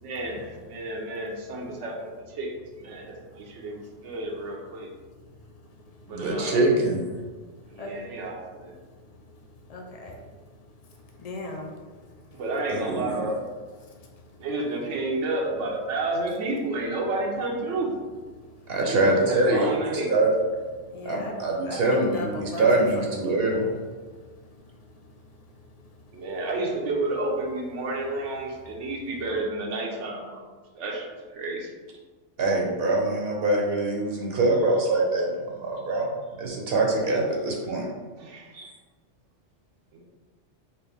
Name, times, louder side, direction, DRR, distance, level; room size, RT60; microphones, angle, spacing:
voice 1, 0.0-2.5 2.8-4.9 6.0-6.6 7.7-8.8 12.3-13.4 14.4-17.9 18.8-20.1 26.1-30.4 30.7-31.1 31.3-31.7 38.2-38.5 39.9-40.0, right 2 dB, 85° right, 0 dB, 1.0 m, -31 dB
voice 2, 6.1-7.0 12.7-13.1 18.7-19.7 20.1-20.3 21.0-23.7 32.4-36.1 36.4-37.9 38.5-38.7, right 2 dB, 60° right, -1 dB, 0.8 m, -24 dB
voice 3, 9.7-10.2 11.2-11.7 20.9-21.4 21.7-23.7, left 2 dB, 80° left, 1 dB, 0.3 m, -37 dB
4.2 x 2.6 x 3.3 m, 1.4 s
omnidirectional pair, 1.2 m